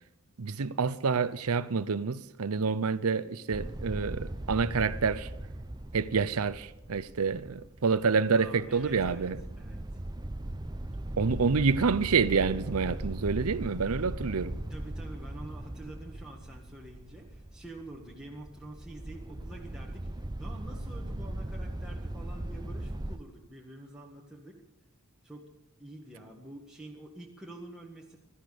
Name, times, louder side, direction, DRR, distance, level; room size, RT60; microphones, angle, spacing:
voice 1, 0.4-5.3 5.9-9.4 11.2-14.6, right 5 dB, 80° right, 0.7 m, -28 dB
sound 1, 3.5-23.2, right 1 dB, 20° right, 0.7 m, -39 dB
voice 2, 8.3-9.3 9.6-10.0 14.7-20.1 20.4-24.6 25.2-25.5 25.8-28.3, right 1 dB, 5° right, 1.7 m, -47 dB
16.5 x 12.5 x 6.8 m
head